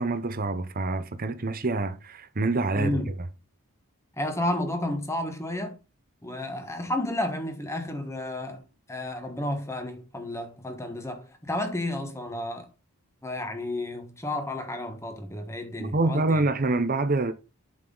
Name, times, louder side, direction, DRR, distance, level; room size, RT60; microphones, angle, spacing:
voice 1, 0.0-3.1 15.8-17.3, right 2 dB, 40° right, 0.8 m, -26 dB
voice 2, 2.7-3.1 4.2-5.8 6.2-12.7 13.2-16.4, left 1 dB, 15° left, 1.4 m, -32 dB
7.7 x 5.7 x 3.9 m
head